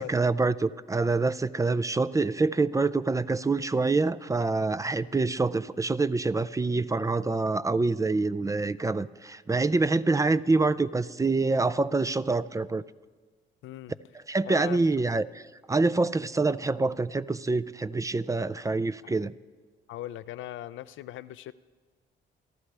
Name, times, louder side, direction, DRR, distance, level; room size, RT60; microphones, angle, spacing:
voice 1, 0.0-12.8 14.3-15.4 15.7-19.3, right 3 dB, 15° right, 16 dB, 0.4 m, -26 dB
voice 2, 13.6-14.0 14.5-14.9 19.0-19.2 19.9-21.5, left 13 dB, 80° left, 15 dB, 0.5 m, -39 dB
28.5 x 11.5 x 3.4 m, 1.4 s
cardioid pair, 90°, 20 cm